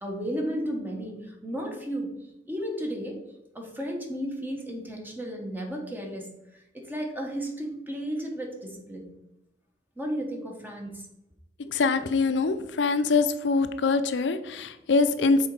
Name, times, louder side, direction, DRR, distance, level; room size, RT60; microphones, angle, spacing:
voice 1, 0.0-2.1 2.5-3.2 3.5-9.1 10.0-11.0, equal, 10° right, 1 dB, 1.1 m, -34 dB
voice 2, 11.6-15.5, left 4 dB, 90° left, 10 dB, 0.5 m, -24 dB
6.3 x 3.9 x 4.8 m, 0.89 s
head